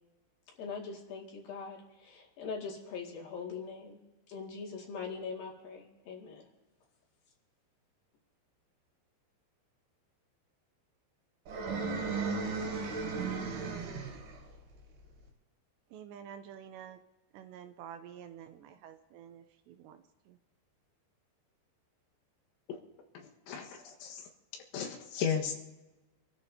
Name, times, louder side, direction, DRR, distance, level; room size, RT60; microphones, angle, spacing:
voice 1, 0.5-4.0 4.3-6.5, left 5 dB, 55° left, -1 dB, 3.7 m, -42 dB
sound 1, 11.5-14.4, right 4 dB, 60° right, 4.0 m, -35 dB
voice 2, 15.9-17.0 17.3-20.0 20.3-20.4, right 9 dB, 80° right, 8 dB, 2.6 m, -49 dB
voice 3, 23.5-24.2 24.7-25.6, left 7 dB, 85° left, 1 dB, 3.9 m, -34 dB
27.0 x 14.0 x 2.8 m, 1.1 s
omnidirectional pair, 5.3 m